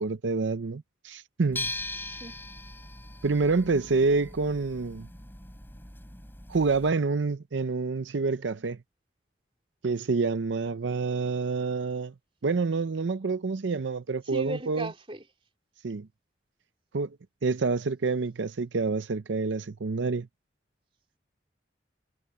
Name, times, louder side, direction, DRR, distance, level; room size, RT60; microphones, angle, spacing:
voice 1, 0.0-1.7 3.2-5.1 6.5-8.8 9.8-12.1 12.4-14.9 15.8-16.1 16.9-17.2 17.4-20.3, right 4 dB, 80° right, 0.6 m, -27 dB
sound 1, 1.5-6.9, left 2 dB, 10° left, 6.3 m, -40 dB
voice 2, 1.9-2.4 14.2-15.2, right 1 dB, 30° right, 3.4 m, -37 dB
head